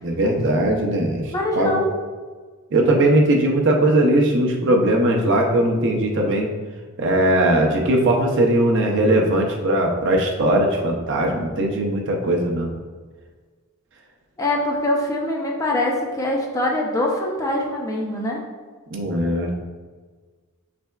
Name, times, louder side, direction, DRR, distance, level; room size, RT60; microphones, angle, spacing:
voice 1, 0.0-1.3 1.6-1.8 2.7-6.5 7.0-12.7 18.9-19.5, right 1 dB, 55° right, 1 dB, 0.6 m, -19 dB
voice 2, 1.3-2.0 14.4-18.4, left 1 dB, 15° left, -1 dB, 0.4 m, -23 dB
5.4 x 3.3 x 2.2 m, 1.4 s
head